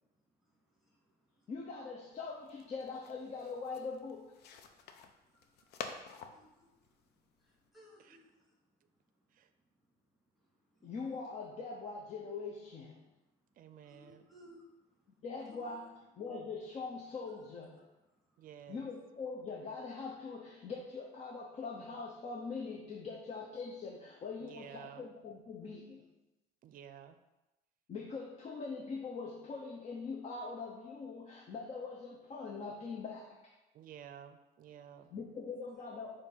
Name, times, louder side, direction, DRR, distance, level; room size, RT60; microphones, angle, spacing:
voice 1, 1.5-4.3 10.8-13.0 15.1-17.8 18.7-26.1 27.9-33.5 35.1-36.2, left 4 dB, 40° left, 0 dB, 0.7 m, -43 dB
sound 1, 2.1-7.7, left 6 dB, 75° left, 0.6 m, -50 dB
voice 2, 5.3-5.6 6.3-6.9 7.4-8.6 10.7-10.8 13.8-14.6 15.5-15.9, equal, ahead, -3 dB, 1.8 m, -61 dB
voice 3, 13.6-14.3 18.4-18.9 24.4-25.0 26.6-27.2 33.7-35.1, right 9 dB, 55° right, 10 dB, 0.5 m, -52 dB
6.8 x 2.6 x 5.6 m, 1.0 s
cardioid pair, 110°, 17 cm